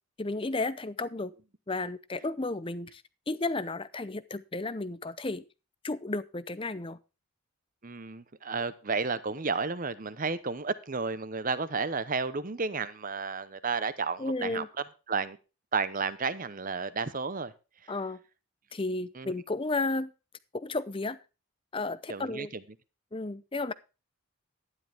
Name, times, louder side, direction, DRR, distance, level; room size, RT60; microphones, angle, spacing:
voice 1, 0.2-1.3 1.7-5.4 5.8-7.0 14.2-14.7 17.9-18.2 18.7-20.1 20.5-21.2 21.7-22.5 23.1-23.7, left 2 dB, 25° left, 0.6 m, -33 dB
voice 2, 7.8-14.6 15.1-15.4 15.7-17.5 17.8-17.9 19.1-19.3 22.1-22.6, right 4 dB, 35° right, 0.8 m, -32 dB
12.5 x 10.5 x 3.5 m
head